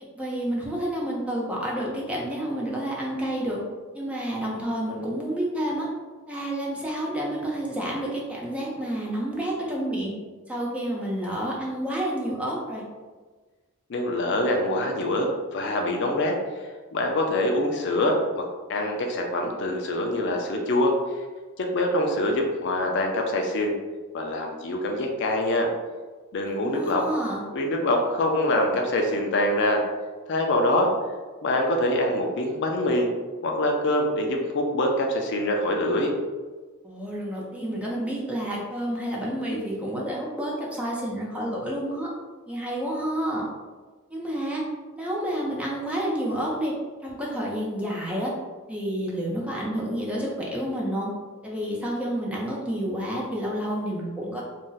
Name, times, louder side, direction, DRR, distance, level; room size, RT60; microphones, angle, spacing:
voice 1, 0.2-3.6 3.9-5.9 6.3-10.1 10.5-12.8 26.5-27.4 36.8-42.1 42.5-43.5 44.1-44.6 44.9-46.7 47.0-48.3 48.7-51.1 51.4-54.4, right 1 dB, 5° right, -4 dB, 0.5 m, -29 dB
voice 2, 13.9-16.3 16.9-18.4 18.7-21.0 21.6-23.7 24.1-25.7 26.3-27.0 27.5-29.8 30.3-30.9 31.4-33.1 33.4-36.1, left 1 dB, 50° left, 2 dB, 0.4 m, -24 dB
2.6 x 2.1 x 3.8 m, 1.3 s
head